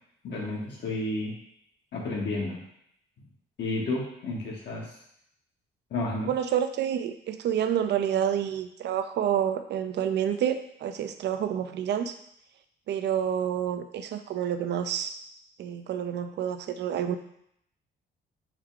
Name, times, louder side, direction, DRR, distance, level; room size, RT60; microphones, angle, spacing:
voice 1, 0.2-1.3 1.9-2.6 3.6-5.0 5.9-6.3, left 2 dB, 60° left, -3 dB, 0.9 m, -31 dB
voice 2, 6.3-12.1 12.9-15.1 15.6-17.2, right 9 dB, 60° right, 9 dB, 0.4 m, -28 dB
4.7 x 2.3 x 3.7 m, 0.74 s
cardioid pair, 90°, 20 cm